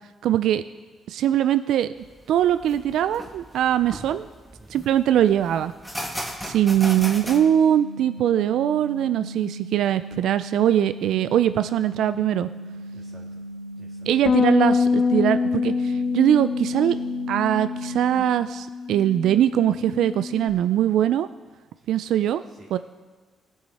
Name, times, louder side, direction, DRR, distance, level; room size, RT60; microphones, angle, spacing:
voice 1, 0.2-0.6 1.1-1.9 2.3-4.3 4.7-5.7 6.4-12.5 14.1-16.9 17.3-21.3 21.9-22.4 22.7-22.8, right 11 dB, 80° right, 13 dB, 0.3 m, -21 dB
sound 1, 2.0-7.4, equal, ahead, 1.6 m, -37 dB
voice 2, 4.6-4.9 12.9-13.4 13.7-14.1 21.8-22.0 22.5-22.8, right 2 dB, 50° right, -4 dB, 2.0 m, -51 dB
sound 2, 6.8-18.2, equal, 70° left, 2.1 m, -38 dB
Bass guitar, 14.3-20.5, left 5 dB, 50° left, 0.6 m, -25 dB
20.0 x 7.4 x 4.1 m, 1.4 s
cardioid pair, 90°, 0 cm